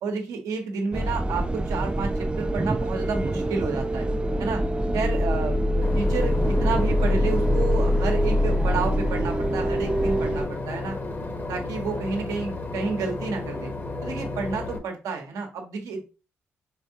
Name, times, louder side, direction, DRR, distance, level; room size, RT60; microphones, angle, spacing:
voice 1, 0.0-4.1 4.4-4.6 4.9-11.0 11.5-13.7 14.0-16.0, right 4 dB, 75° right, 3 dB, 1.1 m, -30 dB
sound 1, 0.9-10.5, equal, 15° right, 0.4 m, -24 dB
Boat Water vehicle / Engine, 5.8-14.8, left 2 dB, 35° left, 1.1 m, -33 dB
5.1 x 3.5 x 2.8 m, 0.31 s
hypercardioid pair, 50°, 6 cm